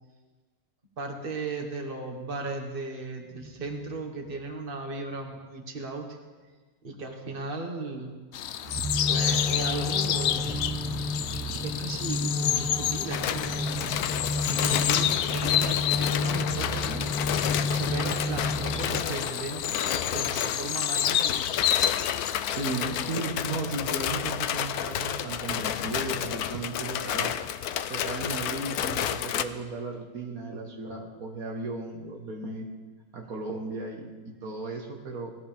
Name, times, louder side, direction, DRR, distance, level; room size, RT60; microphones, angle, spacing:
voice 1, 1.0-6.1 6.8-8.1 8.5-10.5 11.1-14.0 14.5-17.0 17.7-21.4 26.5-26.7, right 3 dB, 35° right, 2 dB, 1.8 m, -36 dB
sound 1, 3.4-4.7 8.6-19.0, left 2 dB, 5° right, 0.8 m, -31 dB
sound 2, 8.3-23.2, left 10 dB, 70° left, 0.7 m, -30 dB
sound 3, 13.1-29.4, left 10 dB, 90° left, 1.1 m, -31 dB
voice 2, 22.5-27.3 27.9-32.7 33.1-35.3, right 3 dB, 70° right, 1 dB, 1.9 m, -35 dB
19.0 x 14.5 x 3.5 m, 1.3 s
omnidirectional pair, 1.6 m